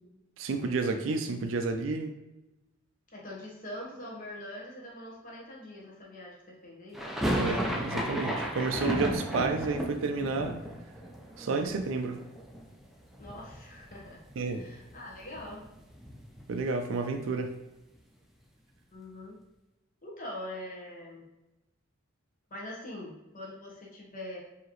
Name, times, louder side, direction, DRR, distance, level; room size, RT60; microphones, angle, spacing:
voice 1, 0.4-2.1 7.4-10.6 11.4-12.2 14.4-14.7 16.5-17.5, right 3 dB, 70° right, 6 dB, 0.4 m, -31 dB
voice 2, 3.1-7.0 13.2-14.2 14.5-15.6 18.9-19.4 20.0-21.3 22.5-24.4, left 1 dB, 40° left, -3 dB, 1.1 m, -43 dB
sound 1, 6.9-12.9 13.1-14.0 14.3-14.4 14.6-16.8, right 1 dB, ahead, 0.4 m, -34 dB
4.8 x 2.8 x 3.0 m, 0.97 s
head